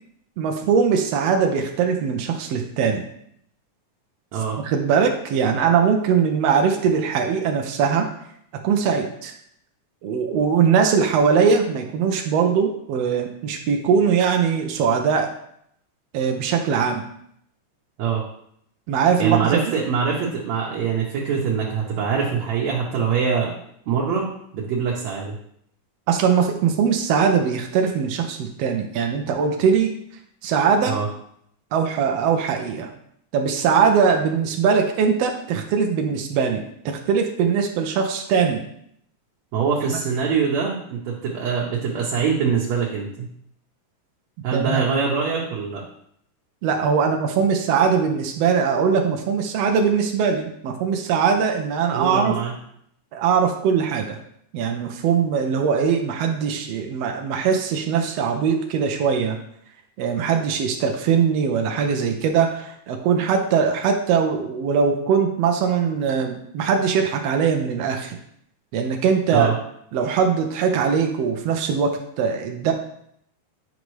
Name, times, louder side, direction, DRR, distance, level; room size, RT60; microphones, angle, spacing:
voice 1, 0.4-3.1 4.6-8.1 8.6-9.3 10.0-15.3 16.1-17.0 18.9-19.6 26.1-29.9 30.4-31.0 31.7-32.9 33.3-38.6 39.8-40.0 44.5-44.8 46.6-52.3 53.1-54.2 54.5-59.4 60.0-68.2 68.7-69.5 69.9-72.7, right 6 dB, 85° right, 3 dB, 1.4 m, -21 dB
voice 2, 19.2-23.5 23.9-25.3 30.9-31.1 39.5-43.3 44.4-45.8 51.9-52.5 69.3-69.5, right 6 dB, 65° right, -3 dB, 2.0 m, -23 dB
9.7 x 5.2 x 3.1 m, 0.71 s
omnidirectional pair, 3.7 m